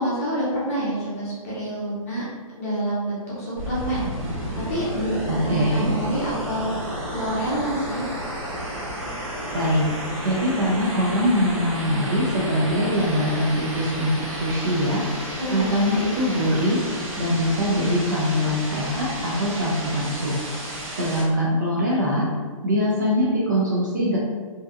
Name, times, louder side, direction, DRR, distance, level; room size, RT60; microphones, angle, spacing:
voice 1, 0.0-2.2 2.6-6.7 7.1-8.1 15.4-15.8, right 1 dB, 25° left, -8 dB, 0.7 m, -27 dB
sound 1, 3.6-21.2, equal, 80° right, 1.2 m, -32 dB
voice 2, 5.3-5.9 9.5-9.9 10.2-15.0 15.5-16.8 17.2-20.4 21.0-22.3 22.6-24.2, equal, 35° right, -5 dB, 0.4 m, -22 dB
2.7 x 2.2 x 2.3 m, 1.5 s
hypercardioid pair, 170°, 18 cm